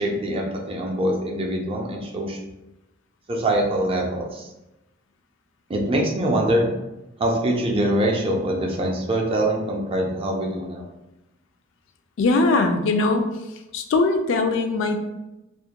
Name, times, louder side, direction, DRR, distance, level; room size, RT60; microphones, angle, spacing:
voice 1, 0.0-2.4 3.3-4.5 5.7-6.7 7.2-10.9, right 1 dB, 30° right, 0 dB, 0.4 m, -24 dB
voice 2, 12.2-13.3 13.7-15.1, left 3 dB, 70° left, 6 dB, 0.3 m, -21 dB
2.4 x 2.1 x 2.8 m, 0.96 s
head